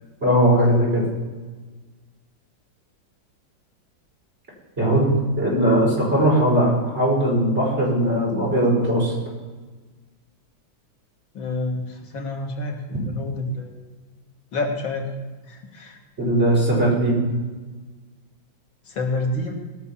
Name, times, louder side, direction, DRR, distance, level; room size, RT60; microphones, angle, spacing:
voice 1, 0.2-1.0 4.8-9.1 16.2-17.2, right 1 dB, 35° right, -5 dB, 5.6 m, -19 dB
voice 2, 11.3-13.7 14.5-15.1 15.4-16.0 18.9-19.5, left 2 dB, 80° left, 1 dB, 2.6 m, -28 dB
19.0 x 6.4 x 7.2 m, 1.3 s
omnidirectional pair, 2.1 m